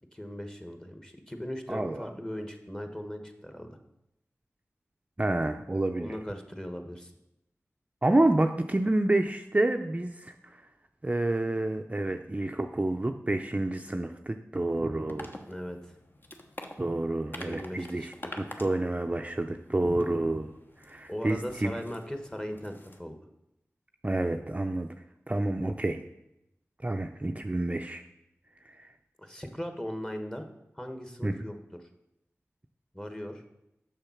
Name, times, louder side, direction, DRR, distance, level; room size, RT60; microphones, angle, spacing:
voice 1, 0.1-3.8 6.0-7.1 15.5-15.9 17.4-18.4 21.1-22.7 23.0-23.2 29.2-30.4 30.7-31.9 32.9-33.4, equal, 15° left, 6 dB, 1.2 m, -39 dB
voice 2, 1.7-2.1 5.2-6.1 8.0-10.6 11.0-15.4 16.8-20.5 20.8-21.7 24.0-24.9 25.3-26.0 26.8-28.0 28.7-28.8 31.2-31.4, right 2 dB, 25° right, 5 dB, 0.5 m, -29 dB
sound 1, 15.1-23.0, left 1 dB, 40° left, 1.0 m, -47 dB
6.8 x 6.4 x 5.8 m, 0.86 s
wide cardioid pair, 45°, 5 cm